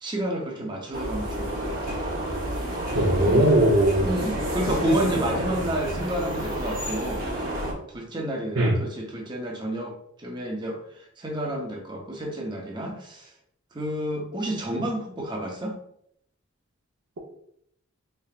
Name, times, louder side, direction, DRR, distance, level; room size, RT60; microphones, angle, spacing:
voice 1, 0.0-2.0 3.0-3.4 4.0-7.3 7.9-10.8 11.2-13.3 13.7-15.8, right 1 dB, 20° right, 0 dB, 0.6 m, -30 dB
sound 1, 0.9-7.7, right 1 dB, 40° right, 1.0 m, -29 dB
voice 2, 2.9-4.1 8.6-8.8, right 1 dB, 75° right, -4 dB, 0.7 m, -19 dB
3.8 x 3.3 x 2.4 m, 0.71 s
head